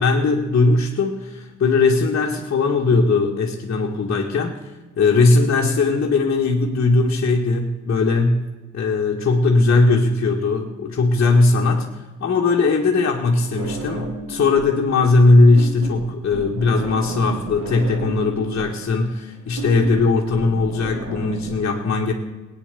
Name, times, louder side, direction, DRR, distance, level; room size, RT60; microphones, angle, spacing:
voice 1, 0.0-4.6 5.0-8.4 8.7-11.9 12.2-22.1, left 3 dB, 45° left, -3 dB, 1.8 m, -19 dB
sound 1, 13.6-14.8 15.1-21.6, right 3 dB, 55° right, 2.7 m, -33 dB
17.0 x 9.5 x 6.8 m, 1.2 s
cardioid pair, 90°, 30 cm